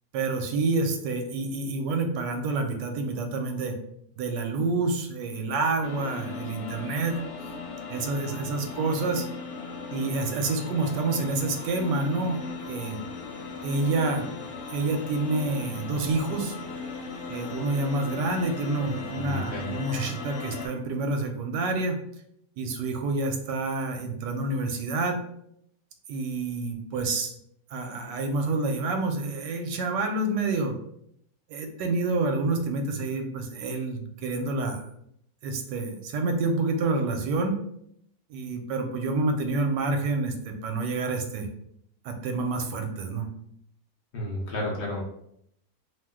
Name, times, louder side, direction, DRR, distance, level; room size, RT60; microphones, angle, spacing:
voice 1, 0.1-3.7 4.2-7.1 7.9-9.3 9.9-12.4 12.7-13.0 13.6-14.3 14.7-16.6 17.3-22.0 22.6-25.2 26.1-27.3 27.7-30.7 31.5-34.8 35.4-37.6 38.3-41.5 42.0-43.3, right 3 dB, 80° right, 4 dB, 1.2 m, -28 dB
sound 1, 5.8-20.7, left 4 dB, 75° left, 1.2 m, -37 dB
voice 2, 19.1-19.7 44.1-45.0, left 1 dB, 55° left, -2 dB, 0.8 m, -32 dB
2.9 x 2.1 x 3.4 m, 0.72 s
omnidirectional pair, 1.9 m